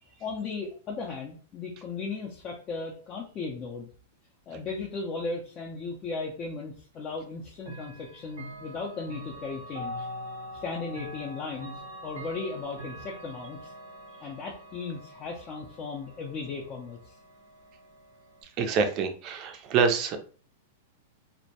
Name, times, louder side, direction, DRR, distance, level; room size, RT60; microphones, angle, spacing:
voice 1, 0.2-3.9 4.5-10.1 10.6-11.8 12.0-13.7 14.2-17.1, left 4 dB, 30° left, -2 dB, 0.5 m, -36 dB
Chime / Clock, 7.6-18.4, equal, 85° right, 0.8 m, -43 dB
voice 2, 18.6-20.2, right 5 dB, 35° right, 6 dB, 0.4 m, -26 dB
2.1 x 2.1 x 2.7 m, 0.41 s
hypercardioid pair, 140°, 0 cm